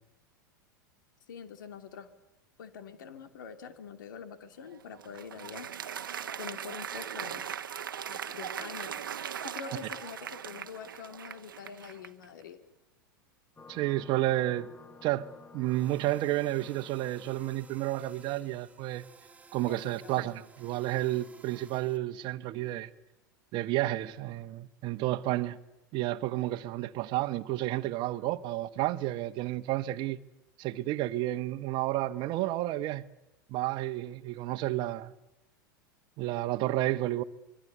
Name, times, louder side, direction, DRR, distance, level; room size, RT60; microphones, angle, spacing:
voice 1, 1.3-2.1 2.6-5.7 6.4-7.5 8.1-9.0 9.4-12.6 19.7-20.3, left 6 dB, 70° left, 2.9 m, -45 dB
Applause, 4.6-12.3, right 9 dB, 75° right, 1.1 m, -39 dB
sound 1, 13.6-18.8, left 4 dB, 15° left, 2.0 m, -54 dB
voice 2, 13.7-14.7 15.0-15.3 15.5-19.0 19.5-22.9 23.5-25.6 25.9-30.2 30.6-33.0 33.5-35.1 36.2-37.2, right 16 dB, 45° right, 1.3 m, -31 dB
sound 2, 15.6-22.0, right 4 dB, 15° right, 2.4 m, -56 dB
26.0 x 23.5 x 8.3 m
figure-of-eight pair, 90°, 11 cm